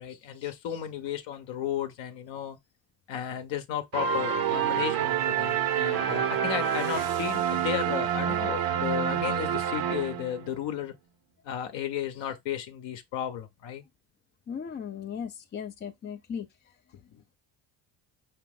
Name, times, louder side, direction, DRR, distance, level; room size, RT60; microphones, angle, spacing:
voice 1, 0.0-2.6 3.1-10.9 11.4-13.8, left 10 dB, 65° left, 0.8 m, -34 dB
sound 1, 3.9-10.5, right 9 dB, 50° right, 0.7 m, -28 dB
voice 2, 14.5-16.5, left 7 dB, 25° left, 0.4 m, -37 dB
5.0 x 2.8 x 3.5 m
supercardioid pair, 85°, 48 cm